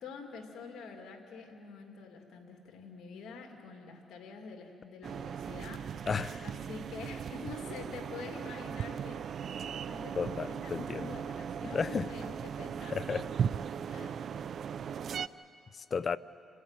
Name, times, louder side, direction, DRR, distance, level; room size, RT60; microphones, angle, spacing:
voice 1, 0.0-5.8 6.4-9.4 9.9-13.0 13.9-14.2, left 4 dB, 75° left, 3 dB, 2.5 m, -47 dB
sound 1, 5.0-15.3, right 7 dB, 60° right, 0.5 m, -38 dB
voice 2, 6.1-6.5 10.2-11.1 11.6-12.1 12.9-13.3 15.7-16.2, left 5 dB, 40° left, 16 dB, 0.6 m, -33 dB
27.5 x 15.5 x 9.0 m, 2.9 s
cardioid pair, 90°, 0 cm